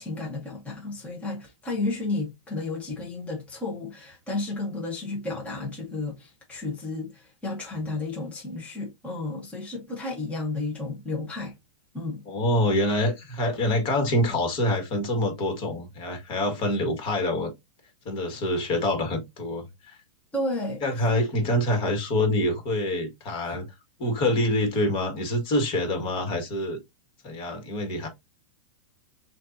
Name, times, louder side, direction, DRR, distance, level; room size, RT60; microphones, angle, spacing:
voice 1, 0.0-11.6 11.9-12.2 20.3-20.8 23.4-23.6, left 2 dB, 10° left, 1.1 m, -32 dB
voice 2, 12.3-17.5 18.0-20.0 20.8-23.7 24.0-26.8 27.2-28.1, left 1 dB, 35° left, 1.7 m, -26 dB
6.5 x 2.6 x 2.7 m
supercardioid pair, 150°, 16 cm